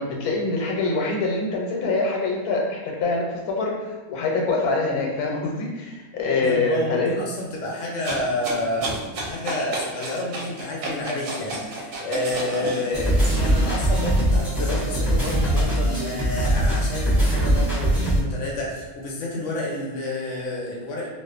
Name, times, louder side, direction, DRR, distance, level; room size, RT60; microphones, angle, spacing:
voice 1, 0.0-7.2, left 3 dB, 85° left, -2 dB, 1.1 m, -25 dB
voice 2, 6.4-9.0 9.2-21.1, left 1 dB, 65° left, -2 dB, 0.8 m, -29 dB
sound 1, 8.0-13.7 14.1-15.6, right 2 dB, 70° right, 0.9 m, -32 dB
sound 2, 12.9-18.2, right 1 dB, 35° right, 0.7 m, -21 dB
2.4 x 2.3 x 2.3 m, 1.2 s
omnidirectional pair, 1.5 m